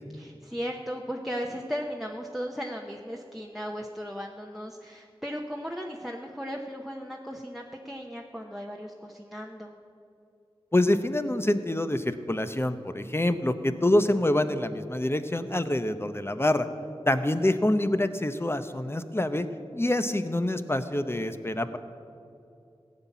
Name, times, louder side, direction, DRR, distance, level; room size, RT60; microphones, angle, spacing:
voice 1, 0.1-9.7, equal, ahead, 1 dB, 0.9 m, -36 dB
voice 2, 10.7-16.7 17.1-19.5 19.7-21.8, left 1 dB, 25° left, 10 dB, 0.7 m, -26 dB
16.0 x 5.8 x 9.2 m, 2.6 s
wide cardioid pair, 50°, 11 cm